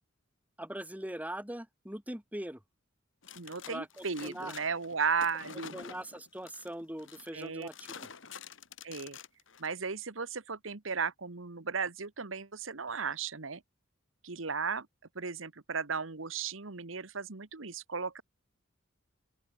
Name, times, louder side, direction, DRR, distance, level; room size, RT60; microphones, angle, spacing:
voice 1, 0.6-2.6 3.7-4.5 5.7-8.1, right 1 dB, 10° right, 3.0 m, -41 dB
sound 1, 3.2-9.7, left 6 dB, 70° left, 2.1 m, -48 dB
voice 2, 3.4-5.8 7.3-7.7 8.8-9.2 9.6-13.6 14.2-14.9 15.1-18.2, right 5 dB, 75° right, 1.4 m, -35 dB
open air
head